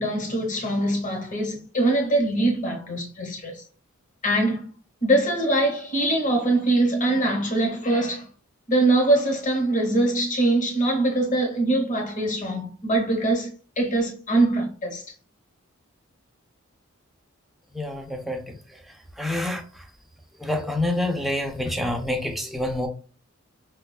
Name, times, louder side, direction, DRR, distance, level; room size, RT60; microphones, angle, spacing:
voice 1, 0.0-3.6 4.2-4.6 5.0-8.3 8.7-15.0, right 2 dB, 40° left, 1.0 m, -23 dB
voice 2, 17.7-18.6 19.2-19.6 20.4-22.9, left 1 dB, ahead, 0.4 m, -27 dB
5.0 x 2.3 x 2.2 m
head